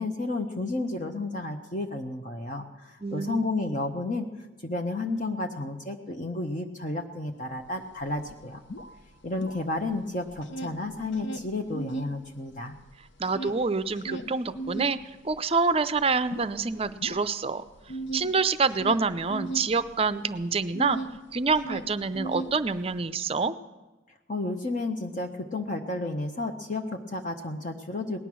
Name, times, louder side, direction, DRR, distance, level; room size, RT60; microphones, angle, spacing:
voice 1, 0.0-4.3 4.6-8.6 9.2-12.7 24.3-28.2, left 2 dB, 40° left, 3 dB, 0.8 m, -32 dB
voice 2, 3.0-3.4 13.2-15.0 15.2-17.6 18.1-21.0 21.3-23.6, right 4 dB, 30° right, 13 dB, 0.5 m, -26 dB
sound 1, 7.7-7.8 8.0-10.0 10.3-12.2 12.5-21.2 21.5-23.0, right 2 dB, 70° left, 0.8 m, -37 dB
18.5 x 11.0 x 6.1 m, 1.2 s
head